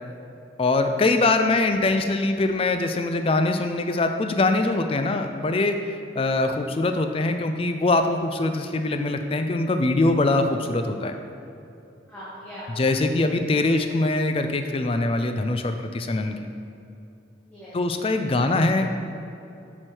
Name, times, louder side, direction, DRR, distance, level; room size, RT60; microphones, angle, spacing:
voice 1, 0.6-5.8 6.2-11.1 12.8-16.4 17.7-19.0, left 2 dB, 30° left, 6 dB, 0.4 m, -23 dB
voice 2, 12.1-13.2 13.7-13.8 17.4-17.8 18.4-18.5, equal, 10° left, -11 dB, 1.5 m, -42 dB
7.7 x 6.4 x 4.5 m, 2.7 s
head